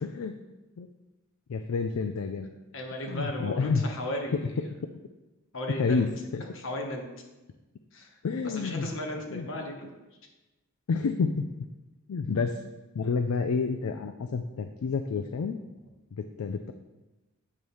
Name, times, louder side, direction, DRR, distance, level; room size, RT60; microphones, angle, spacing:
voice 1, 0.0-0.4 0.8-0.9 1.5-2.5 3.1-3.8 5.8-6.4 8.2-8.9 9.3-9.5 10.9-11.4 12.1-12.6 12.9-15.6 16.1-16.7, left 4 dB, 75° left, 7 dB, 0.4 m, -29 dB
voice 2, 2.7-4.5 5.5-6.0 6.5-7.1 7.9-8.1 8.4-9.8 13.0-13.2, left 1 dB, 60° left, 1 dB, 1.1 m, -35 dB
8.7 x 3.2 x 5.4 m, 1.1 s
head